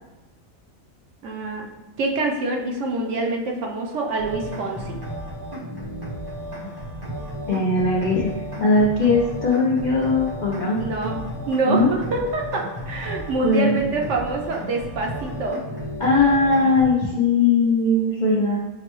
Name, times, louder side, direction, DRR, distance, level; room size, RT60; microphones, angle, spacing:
voice 1, 1.2-1.6 2.0-5.0 10.8-11.2 11.5-15.6, right 3 dB, 65° right, 1 dB, 0.9 m, -26 dB
sound 1, 4.2-16.9, equal, 30° right, 0.4 m, -33 dB
voice 2, 7.5-8.3 8.6-10.8 11.7-12.0 13.4-13.7 16.0-18.6, left 3 dB, 55° left, -5 dB, 0.5 m, -19 dB
5.8 x 2.1 x 3.0 m, 1.1 s
omnidirectional pair, 1.4 m